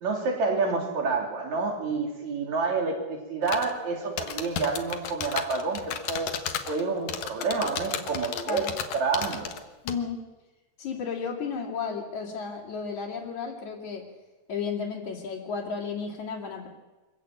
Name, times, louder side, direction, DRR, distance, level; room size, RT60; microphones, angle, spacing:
voice 1, 0.0-6.4 6.7-9.5, right 4 dB, 45° right, 2 dB, 3.8 m, -28 dB
sound 1, 3.4-3.7 4.2-6.8 7.1-9.6 9.9-10.0, left 9 dB, 75° left, 1.6 m, -32 dB
voice 2, 9.8-10.2 10.8-14.0 14.5-16.7, left 5 dB, 45° left, -4 dB, 3.3 m, -33 dB
25.0 x 15.0 x 8.8 m, 1.2 s
omnidirectional pair, 5.3 m